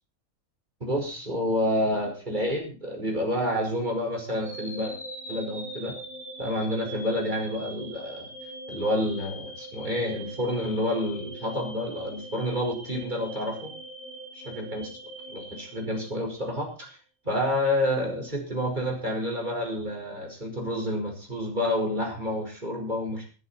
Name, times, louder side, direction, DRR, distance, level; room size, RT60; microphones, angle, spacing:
voice 1, 0.8-4.9 5.3-5.9 6.4-8.3 8.7-13.7 14.6-14.9 15.3-17.0 17.2-23.3, left 1 dB, 35° right, 1 dB, 5.4 m, -29 dB
sound 1, 4.4-16.5, right 1 dB, 10° right, 5.5 m, -42 dB
19.0 x 11.0 x 4.4 m, 0.36 s
omnidirectional pair, 1.3 m